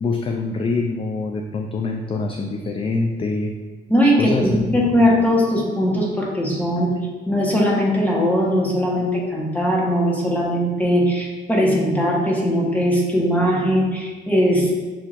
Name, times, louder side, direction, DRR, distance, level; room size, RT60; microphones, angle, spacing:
voice 1, 0.0-3.6 4.1-4.9, left 3 dB, 25° left, 3 dB, 0.3 m, -25 dB
voice 2, 3.9-6.9 7.3-14.8, equal, 10° left, -3 dB, 1.2 m, -19 dB
6.9 x 2.8 x 2.5 m, 1.3 s
cardioid pair, 90°, 20 cm